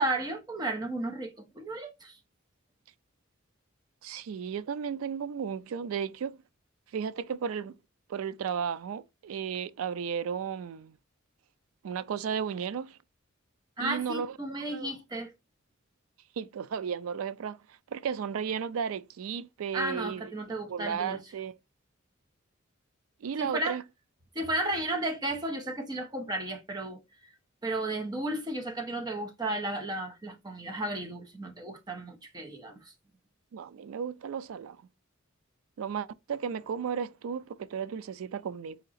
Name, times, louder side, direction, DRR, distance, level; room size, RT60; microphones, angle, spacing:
voice 1, 0.0-2.2 13.8-15.3 19.7-21.2 23.4-23.8 24.3-27.0 27.6-32.9, right 1 dB, 20° right, 0.7 m, -33 dB
voice 2, 4.0-6.4 6.9-7.8 8.1-11.0 11.8-13.0 13.8-14.3 14.7-14.9 16.4-17.6 17.9-20.3 20.7-21.5 23.2-23.8 33.5-34.8 35.8-38.8, right 7 dB, 80° right, 0.3 m, -34 dB
3.8 x 2.8 x 4.0 m
head